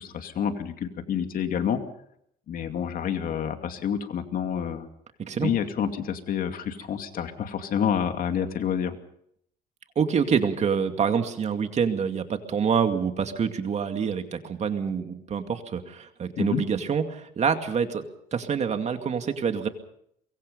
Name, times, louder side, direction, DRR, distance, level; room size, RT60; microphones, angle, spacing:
voice 1, 0.0-1.8 2.5-4.9 5.4-9.0 16.4-16.6, left 8 dB, 55° left, 6 dB, 2.5 m, -28 dB
voice 2, 10.0-19.7, right 6 dB, 40° right, 7 dB, 2.4 m, -26 dB
23.5 x 22.5 x 5.4 m, 0.71 s
cardioid pair, 110°, 17 cm